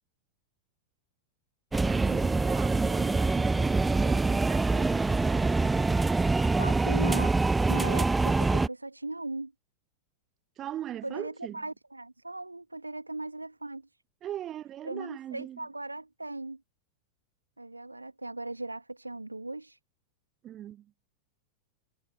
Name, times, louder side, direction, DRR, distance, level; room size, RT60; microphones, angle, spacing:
sound 1, 1.7-8.7, right 3 dB, 10° right, 0.4 m, -25 dB
voice 1, 1.9-6.0 10.6-11.6 14.2-15.6 20.4-20.9, right 12 dB, 30° right, 0.9 m, -40 dB
voice 2, 6.6-7.3 7.7-9.5 11.0-13.9 14.8-16.6 17.6-19.8, right 2 dB, 85° right, 2.3 m, -38 dB
figure-of-eight pair, 90°, 0 cm